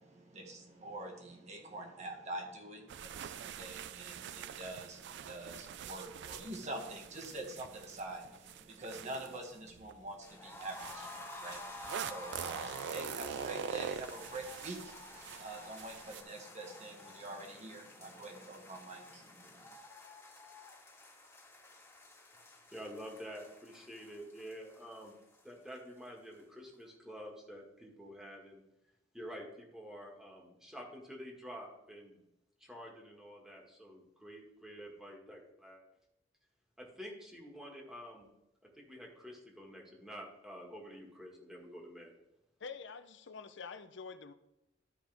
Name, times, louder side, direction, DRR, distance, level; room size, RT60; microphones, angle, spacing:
voice 1, 0.0-19.8, right 2 dB, 40° right, 2 dB, 1.6 m, -46 dB
sound 1, 2.9-9.9 10.6-16.2, right 8 dB, 65° right, 0.3 m, -44 dB
sound 2, 10.2-26.1 26.3-26.4 26.7-26.8, left 2 dB, 15° left, 1.8 m, -51 dB
voice 2, 22.7-25.1 25.4-28.6 29.1-32.2 32.6-35.8 36.8-38.3 38.8-42.1, equal, 5° right, -2 dB, 1.9 m, -49 dB
voice 3, 42.6-44.3, left 5 dB, 70° left, 11 dB, 0.6 m, -46 dB
13.0 x 5.0 x 3.5 m, 0.90 s
head